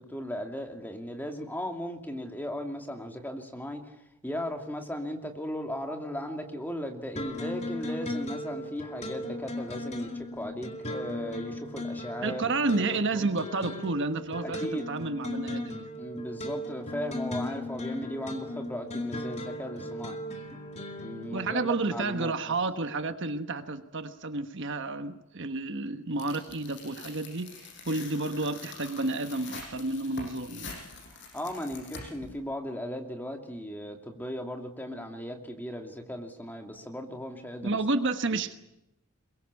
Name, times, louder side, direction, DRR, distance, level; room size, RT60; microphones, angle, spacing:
voice 1, 0.0-12.5 12.8-13.3 14.4-14.9 16.0-20.2 21.0-22.5 31.1-37.8, equal, 10° left, 2.6 m, -37 dB
sound 1, 7.2-21.9, left 1 dB, 30° left, 2.4 m, -37 dB
voice 2, 12.2-15.9 21.3-30.7 37.6-38.5, right 3 dB, 55° right, 1.3 m, -31 dB
Tearing, 26.2-32.3, left 4 dB, 55° left, 7.0 m, -45 dB
23.0 x 22.5 x 8.4 m
head